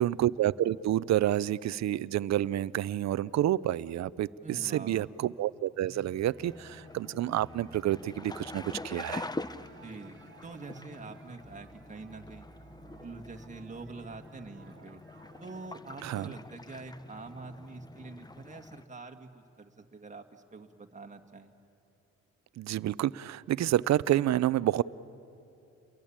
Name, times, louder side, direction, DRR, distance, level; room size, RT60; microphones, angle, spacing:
voice 1, 0.0-9.3 16.0-16.3 22.6-24.8, right 13 dB, 65° right, 19 dB, 0.6 m, -29 dB
voice 2, 4.4-5.1 9.8-12.5 13.0-15.0 15.4-21.5, right 3 dB, 25° right, 4 dB, 2.1 m, -45 dB
sound 1, 5.9-15.7, right 5 dB, 40° right, 1.3 m, -57 dB
sound 2, 6.4-18.9, left 2 dB, 15° left, 0.8 m, -45 dB
29.5 x 22.5 x 8.8 m, 2.7 s
cardioid pair, 90°, 30 cm